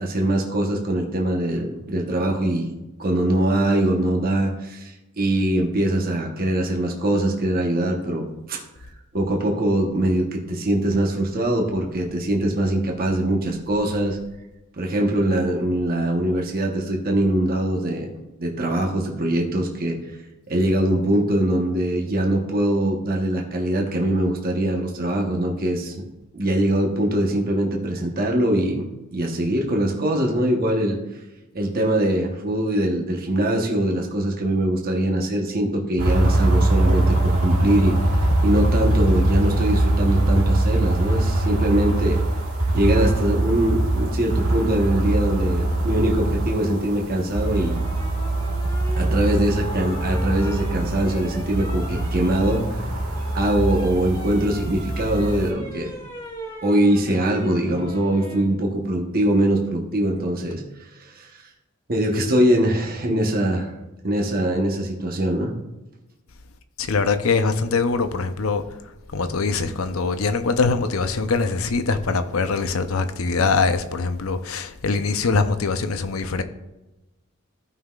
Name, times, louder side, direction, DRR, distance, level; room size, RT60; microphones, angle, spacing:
voice 1, 0.0-2.7 3.0-8.6 9.1-14.2 14.8-18.1 18.4-20.1 20.5-26.1 26.3-28.9 29.1-31.0 31.5-38.0 38.4-42.2 42.7-47.8 49.0-52.9 53.3-55.9 56.6-61.5 61.9-63.7 64.0-65.5, right 1 dB, 45° right, 1.1 m, -22 dB
sound 1, 36.0-55.5, right 1 dB, 85° right, 1.5 m, -22 dB
sound 2, 47.3-58.5 60.1-60.6, equal, 15° left, 1.8 m, -39 dB
voice 2, 66.8-68.6 69.1-76.4, left 4 dB, 85° left, 0.7 m, -23 dB
15.0 x 5.6 x 2.4 m
head